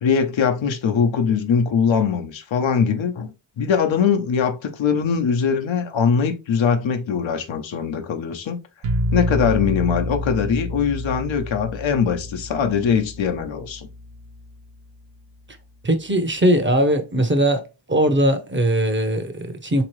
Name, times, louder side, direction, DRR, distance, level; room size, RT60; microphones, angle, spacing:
voice 1, 0.0-3.3 3.6-8.6 9.1-13.9, left 6 dB, 75° left, 0.8 m, -21 dB
sound 1, 8.8-14.6, equal, 85° right, 0.8 m, -29 dB
voice 2, 15.8-17.6 17.9-19.8, right 1 dB, 25° right, 0.7 m, -20 dB
3.6 x 2.9 x 3.1 m
cardioid pair, 80°, 46 cm